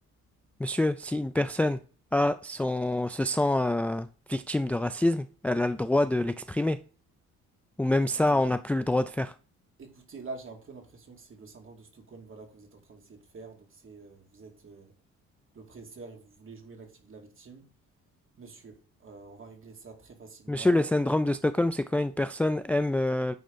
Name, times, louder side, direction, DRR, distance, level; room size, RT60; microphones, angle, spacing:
voice 1, 0.6-1.8 2.1-6.8 7.8-9.3 20.5-23.3, left 1 dB, 5° left, 0.3 m, -26 dB
voice 2, 9.8-14.9 15.5-17.7 18.4-20.9, right 3 dB, 45° right, 2.6 m, -47 dB
9.4 x 4.2 x 5.3 m
cardioid pair, 90°, 30 cm